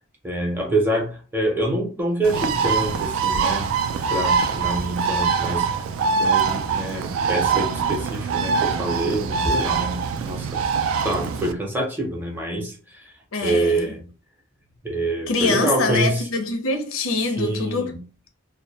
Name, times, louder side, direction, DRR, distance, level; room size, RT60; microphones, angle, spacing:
voice 1, 0.2-3.7 4.1-5.7 6.2-10.6 11.0-13.0 13.4-14.0 14.8-16.2 17.4-18.0, right 1 dB, 10° right, 0.5 m, -26 dB
Bird, 2.2-11.5, right 5 dB, 85° right, 0.3 m, -23 dB
voice 2, 13.3-14.0 15.3-18.0, left 2 dB, 80° left, 0.5 m, -24 dB
2.2 x 2.1 x 2.7 m
head